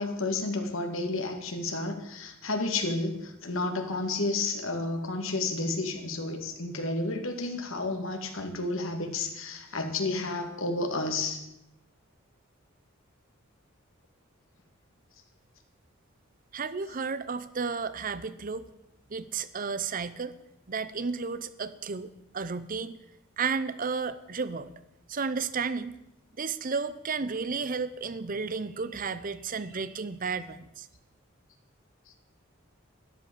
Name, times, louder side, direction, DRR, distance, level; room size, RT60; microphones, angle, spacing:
voice 1, 0.0-11.4, left 2 dB, 80° left, 5 dB, 2.2 m, -31 dB
voice 2, 16.5-18.7 19.1-20.3 20.7-23.0 23.4-24.7 25.1-25.9 26.4-30.9, right 5 dB, 40° right, 14 dB, 0.7 m, -32 dB
12.5 x 12.0 x 7.1 m, 0.87 s
head